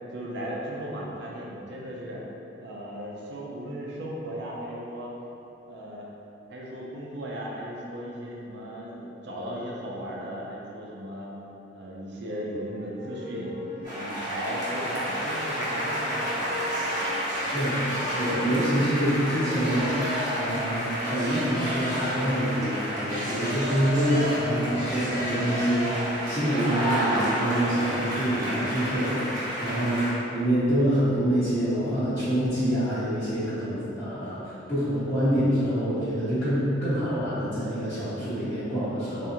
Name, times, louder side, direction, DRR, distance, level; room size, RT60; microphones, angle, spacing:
voice 1, 0.1-2.2 2.6-5.1 5.7-6.1 6.5-11.3 11.7-13.6 13.9-16.6, equal, 65° right, -4 dB, 0.5 m, -36 dB
sound 1, 12.7-20.8, left 2 dB, 55° left, 0.8 m, -40 dB
sound 2, 13.8-30.1, equal, 20° right, 0.9 m, -30 dB
voice 2, 17.4-29.2 29.6-39.3, equal, 15° left, -16 dB, 0.8 m, -26 dB
3.5 x 2.6 x 2.9 m, 3.0 s
head